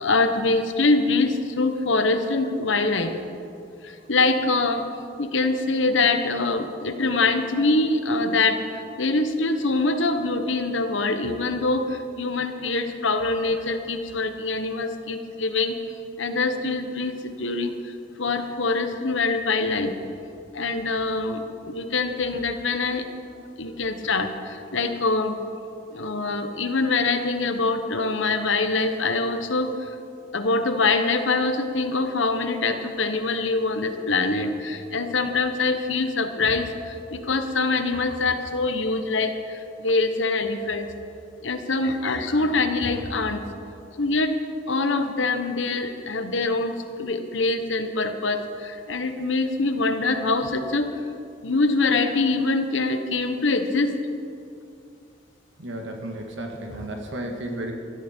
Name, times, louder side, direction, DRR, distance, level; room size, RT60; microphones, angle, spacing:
voice 1, 0.0-3.2 4.1-4.9 5.2-8.6 9.0-11.8 12.2-15.7 16.2-17.7 18.2-19.9 20.5-23.0 23.6-25.4 25.9-29.7 30.3-39.3 39.8-40.9 41.4-43.4 44.0-44.3 44.7-50.9 51.4-53.9, left 3 dB, 80° left, 8 dB, 1.1 m, -24 dB
voice 2, 55.6-57.7, right 1 dB, 80° right, 2 dB, 1.9 m, -33 dB
16.0 x 12.5 x 4.5 m, 2.5 s
head